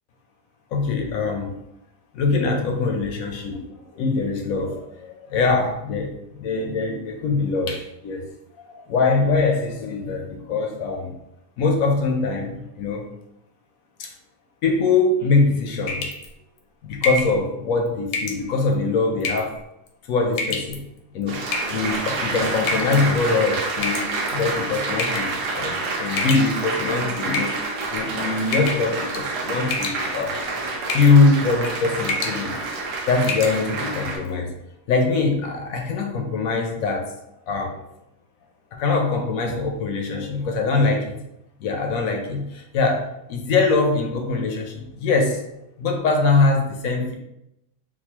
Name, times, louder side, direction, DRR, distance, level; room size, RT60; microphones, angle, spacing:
voice 1, 0.7-1.6 2.1-3.6 3.9-8.2 8.9-11.1 11.6-13.1 14.0-14.1 14.6-16.1 16.8-19.6 20.1-20.8 21.1-27.6 27.9-30.4 30.9-32.6 33.1-34.5 34.9-37.1 37.5-37.8 38.7-41.2 41.6-45.4 45.8-47.1, left 3 dB, 70° left, 3 dB, 0.9 m, -22 dB
sound 1, 15.9-16.3 17.0-17.3 18.1-18.4 19.2-19.6 20.3-20.8 21.5-22.0 22.7-23.0 23.8-24.4 25.0-25.4 26.2-26.8 27.3-28.0 28.5-28.9 29.1-29.4 29.7-30.3 30.9-31.2 31.5-31.7 32.0-32.4 32.8-32.9 33.2-33.6, left 2 dB, 85° left, 1.2 m, -27 dB
Applause, 21.3-34.2, right 3 dB, 80° right, 1.3 m, -28 dB
3.8 x 2.5 x 2.8 m, 0.85 s
omnidirectional pair, 1.7 m